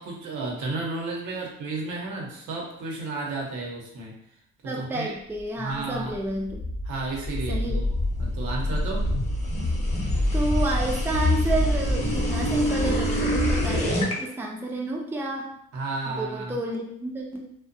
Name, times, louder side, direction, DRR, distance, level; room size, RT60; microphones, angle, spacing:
voice 1, 0.0-4.2 4.6-5.1 5.6-6.1 6.9-7.9 8.2-9.1 15.7-16.6, right 3 dB, 80° right, -1 dB, 0.8 m, -32 dB
voice 2, 4.6-6.7 7.5-7.8 10.3-15.5 16.2-17.5, right 1 dB, 10° right, 0 dB, 0.4 m, -30 dB
sound 1, 6.3-14.1, left 1 dB, 20° left, 0.7 m, -25 dB
2.5 x 2.2 x 2.6 m, 0.71 s
cardioid pair, 90°, 30 cm